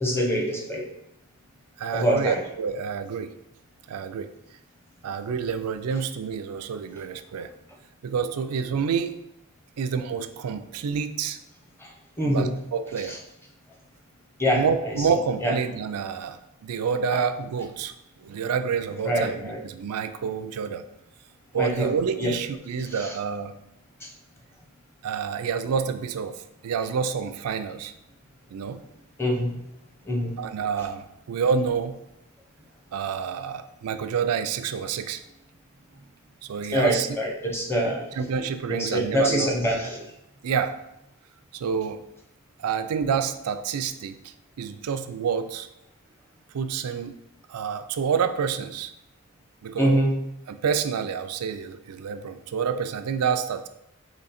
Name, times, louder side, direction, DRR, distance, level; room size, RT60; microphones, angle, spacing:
voice 1, 0.0-0.9 1.9-2.4 11.8-11.9 12.2-12.5 13.1-13.2 14.4-15.0 15.4-15.5 17.1-17.2 19.0-19.6 21.5-21.9 22.2-22.3 22.9-23.1 24.0-24.1 29.2-29.6 30.0-30.4 36.7-38.2 38.7-40.0 49.8-50.2, equal, 10° left, -1 dB, 0.7 m, -25 dB
voice 2, 1.8-3.3 3.9-4.3 5.0-7.5 8.0-9.1 9.8-11.4 12.2-13.2 14.6-17.9 18.2-20.8 21.5-23.5 25.0-27.9 28.5-28.8 30.4-32.0 32.9-35.2 36.4-37.1 38.2-39.5 40.4-40.8 41.5-42.0 42.6-45.7 46.5-47.2 47.5-48.9 49.6-50.0 50.5-53.7, right 6 dB, 90° right, 10 dB, 0.4 m, -28 dB
3.7 x 3.0 x 4.1 m, 0.85 s
head